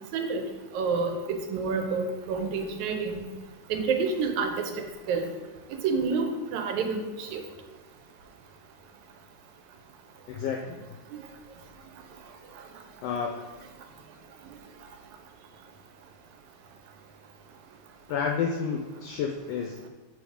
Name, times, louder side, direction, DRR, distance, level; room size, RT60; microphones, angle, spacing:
voice 1, 0.1-0.4 0.7-3.2 3.7-4.5 5.1-5.3 5.8-7.4, right 4 dB, 90° right, 5 dB, 2.1 m, -28 dB
voice 2, 10.3-10.8 13.0-13.3 18.1-19.9, left 6 dB, 85° left, 2 dB, 1.4 m, -30 dB
6.5 x 4.0 x 5.0 m, 1.2 s
omnidirectional pair, 3.3 m